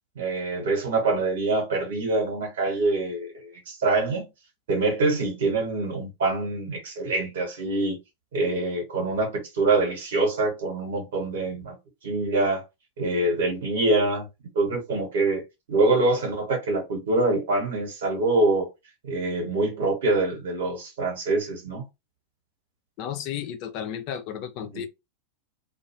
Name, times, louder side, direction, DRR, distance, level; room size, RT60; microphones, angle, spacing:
voice 1, 0.2-4.3 4.7-8.0 8.3-11.8 12.0-12.6 13.0-14.2 14.5-15.4 15.7-18.7 19.0-21.9 24.7-24.8, right 2 dB, 60° right, 1.1 m, -25 dB
voice 2, 23.0-24.9, left 9 dB, 45° left, 0.4 m, -33 dB
2.3 x 2.1 x 2.9 m
figure-of-eight pair, 90°, 0 cm